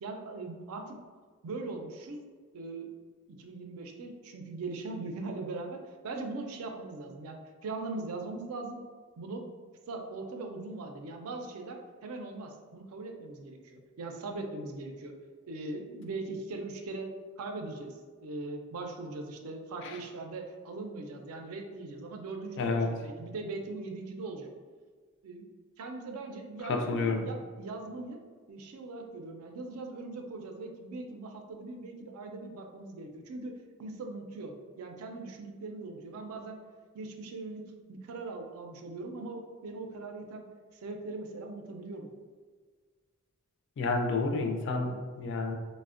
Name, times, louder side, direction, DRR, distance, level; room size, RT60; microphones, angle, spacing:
voice 1, 0.0-0.9 1.4-2.2 2.5-2.9 3.4-8.8 9.2-9.5 9.9-15.1 15.5-17.1 17.4-24.5 25.2-25.5 25.8-28.2 28.5-36.6 36.9-40.5 40.8-42.1, right 3 dB, 80° right, 3 dB, 0.4 m, -40 dB
voice 2, 22.6-23.0 26.6-27.3 43.8-45.5, left 3 dB, 55° left, 3 dB, 0.3 m, -30 dB
3.3 x 2.1 x 2.4 m, 1.5 s
head